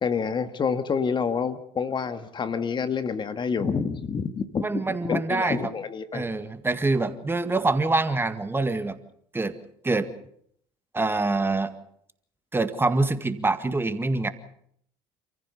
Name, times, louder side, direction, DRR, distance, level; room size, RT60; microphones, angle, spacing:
voice 1, 0.0-6.3, left 6 dB, 35° left, 10 dB, 1.7 m, -28 dB
voice 2, 4.6-5.7 6.1-9.0 9.3-9.5 9.8-10.1 10.9-11.7 12.5-14.3, right 3 dB, 15° right, 10 dB, 1.9 m, -25 dB
28.0 x 15.0 x 7.1 m, 0.67 s
hypercardioid pair, 75°, 13 cm